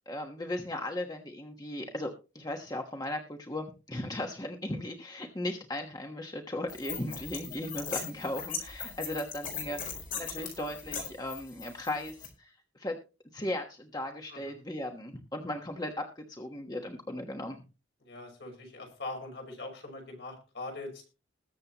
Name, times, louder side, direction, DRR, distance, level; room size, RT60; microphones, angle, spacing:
voice 1, 0.1-12.9 13.3-17.6, left 1 dB, 20° left, 3 dB, 1.2 m, -37 dB
sound 1, 6.7-12.3, left 6 dB, 45° left, 4.6 m, -39 dB
voice 2, 18.0-21.0, left 2 dB, 60° left, 3 dB, 5.9 m, -42 dB
21.0 x 7.7 x 2.9 m, 0.31 s
head